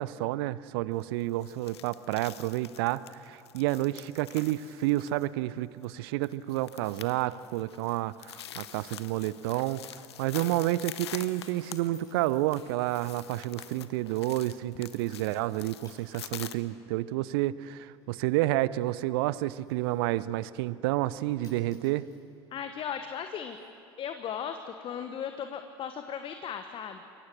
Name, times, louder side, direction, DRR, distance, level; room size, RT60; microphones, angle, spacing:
voice 1, 0.0-9.8 10.2-22.1, right 16 dB, 60° right, 18 dB, 0.7 m, -30 dB
sound 1, 1.0-16.5, left 10 dB, 75° left, 0.8 m, -46 dB
sound 2, 8.0-8.1 8.4-8.6 9.0-9.3 9.6-9.9 10.7-10.9 11.4-12.5 13.5-13.7 14.4-14.5 15.2-15.4 15.8-16.5 16.7-20.3 21.1-21.2 21.4-23.7, left 2 dB, 25° left, 7.9 m, -62 dB
voice 2, 22.5-23.6 24.0-27.0, left 8 dB, 40° left, 7 dB, 1.3 m, -37 dB
28.0 x 23.0 x 6.2 m, 2.5 s
figure-of-eight pair, 65°, 14 cm